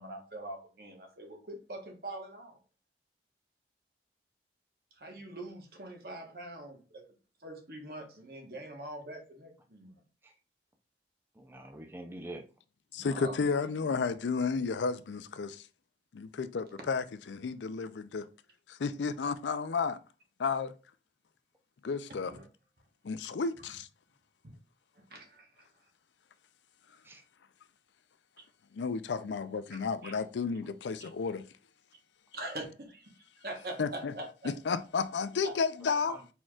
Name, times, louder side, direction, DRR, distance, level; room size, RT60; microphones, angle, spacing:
voice 1, 0.0-2.6 5.0-7.1 7.4-10.0 12.9-13.7 22.3-22.4 24.9-25.7 29.7-30.1 31.0-31.1 32.3-33.1 33.4-34.5 35.4-35.5, right 1 dB, 55° right, 1.2 m, -44 dB
voice 2, 11.4-12.5 27.0-27.2 35.8-36.3, right 1 dB, 15° right, 0.4 m, -45 dB
voice 3, 12.9-15.7 16.1-18.2 18.7-20.0 20.4-20.7 21.8-22.3 23.0-23.9 28.7-31.4 33.8-34.1 34.4-36.2, left 5 dB, 85° left, 0.4 m, -32 dB
4.5 x 4.3 x 2.4 m
head